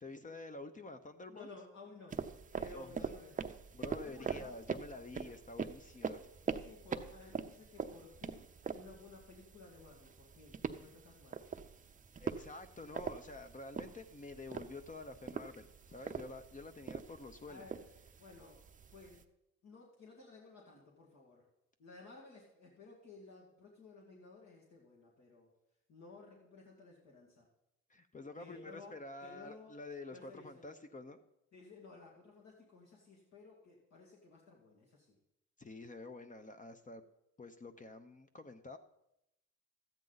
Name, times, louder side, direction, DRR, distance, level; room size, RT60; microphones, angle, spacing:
voice 1, 0.0-1.5 2.7-2.9 3.7-6.2 12.2-17.6 27.9-31.2 35.6-37.0 37.4-38.8, left 2 dB, 25° left, 9 dB, 0.7 m, -49 dB
voice 2, 1.3-2.2 2.5-3.4 4.0-4.5 6.4-8.5 8.7-11.4 17.5-17.8 18.2-18.6 18.9-19.2 19.6-21.5 21.8-25.5 25.9-27.5 28.4-29.0 29.2-29.7 30.1-30.7 31.5-35.1, left 3 dB, 65° left, -3 dB, 2.1 m, -56 dB
sound 1, 2.1-19.2, right 6 dB, 25° right, 0.6 m, -44 dB
13.0 x 9.0 x 4.0 m, 0.85 s
cardioid pair, 90°, 30 cm